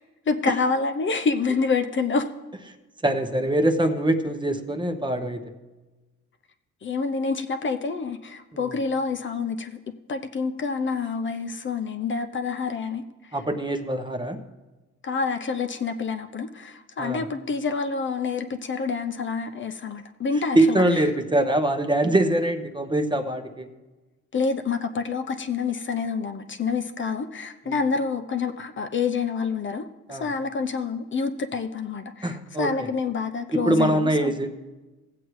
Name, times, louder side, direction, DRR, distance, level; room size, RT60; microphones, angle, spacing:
voice 1, 0.3-2.3 6.8-9.8 10.1-13.0 15.0-20.8 24.3-34.3, left 4 dB, 40° left, 6 dB, 0.7 m, -27 dB
voice 2, 3.0-5.4 8.5-8.7 13.3-14.4 17.0-17.2 20.5-23.7 30.1-30.3 32.2-32.9 33.5-34.5, right 1 dB, 15° right, 7 dB, 0.9 m, -23 dB
16.5 x 7.9 x 3.1 m, 1.2 s
cardioid pair, 90°, 30 cm